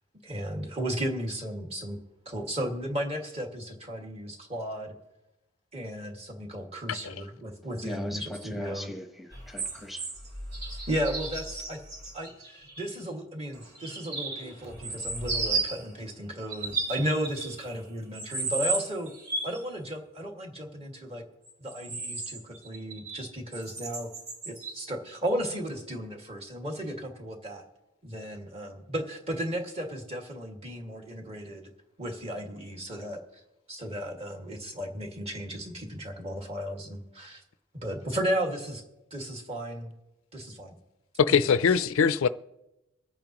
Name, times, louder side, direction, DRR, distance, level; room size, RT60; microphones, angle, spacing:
voice 1, 0.2-2.0 2.3-4.9 5.7-8.9 10.9-11.8 12.1-19.1 19.4-21.2 21.6-24.1 24.5-27.7 28.0-31.6 32.0-33.4 33.7-37.4 37.7-38.8 39.1-39.9 40.3-40.7, equal, 30° right, 1.9 m, -34 dB
voice 2, 7.8-10.1, left 1 dB, ahead, 1.0 m, -39 dB
sound 1, 9.3-12.9 13.5-15.9 16.4-17.8 18.1-19.6 21.5-23.3 23.5-24.9 25.5-25.6, right 3 dB, 55° right, 3.4 m, -34 dB
voice 3, 41.2-42.3, left 6 dB, 70° left, 0.4 m, -22 dB
25.0 x 8.9 x 3.0 m
head